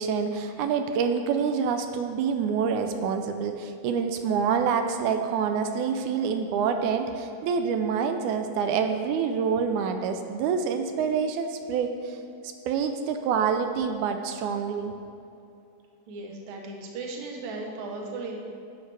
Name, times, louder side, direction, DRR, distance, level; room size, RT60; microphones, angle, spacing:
voice 1, 0.0-12.2 12.7-14.9, right 6 dB, 80° right, 6 dB, 2.0 m, -27 dB
voice 2, 16.1-18.4, right 3 dB, 60° right, 1 dB, 1.3 m, -36 dB
11.0 x 7.8 x 3.3 m, 2.7 s
omnidirectional pair, 3.5 m